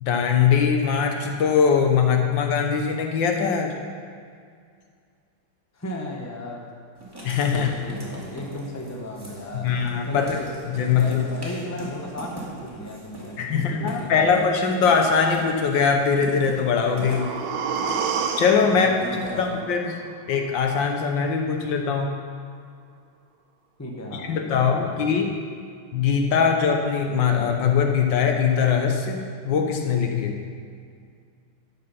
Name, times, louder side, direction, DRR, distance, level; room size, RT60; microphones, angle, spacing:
voice 1, 0.0-3.7 7.2-7.8 9.5-10.3 10.7-11.2 13.4-17.3 18.4-18.9 19.4-19.9 20.3-22.1 24.1-25.3 25.9-30.3, left 6 dB, 70° left, 3 dB, 1.6 m, -21 dB
voice 2, 5.7-6.7 7.5-9.8 10.1-10.5 11.0-14.5 18.8-19.5 23.8-25.2, left 1 dB, 10° left, -1 dB, 1.0 m, -35 dB
Writing, 7.0-19.5, right 1 dB, 10° right, 2.3 m, -41 dB
sound 1, 16.5-20.5 20.9-21.0, right 6 dB, 80° right, 1.5 m, -31 dB
13.5 x 6.5 x 5.7 m, 2.2 s
omnidirectional pair, 2.1 m